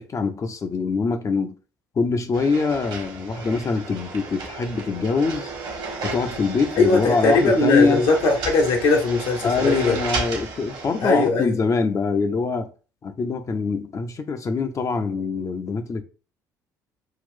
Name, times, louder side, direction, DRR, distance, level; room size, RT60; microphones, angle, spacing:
voice 1, 0.0-1.5 2.0-5.5 6.0-8.0 9.4-12.7 13.0-16.0, left 4 dB, 30° left, 0.7 m, -24 dB
sound 1, 2.3-11.3, right 3 dB, 55° right, 1.3 m, -33 dB
voice 2, 6.8-10.0 11.0-11.5, left 3 dB, 60° left, 1.1 m, -20 dB
5.6 x 2.5 x 3.6 m
figure-of-eight pair, 50°, 10 cm